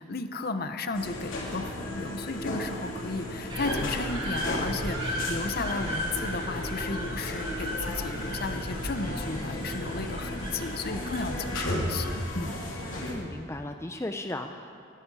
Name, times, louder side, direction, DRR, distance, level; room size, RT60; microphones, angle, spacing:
voice 1, 0.0-12.6, left 3 dB, 50° left, 8 dB, 0.9 m, -34 dB
sound 1, 0.9-13.1, left 1 dB, 90° left, 3.1 m, -35 dB
sound 2, 3.5-12.3, equal, 25° right, 2.4 m, -35 dB
voice 2, 13.1-14.7, left 1 dB, 15° left, 6 dB, 0.5 m, -36 dB
20.0 x 12.5 x 4.8 m, 2.4 s
head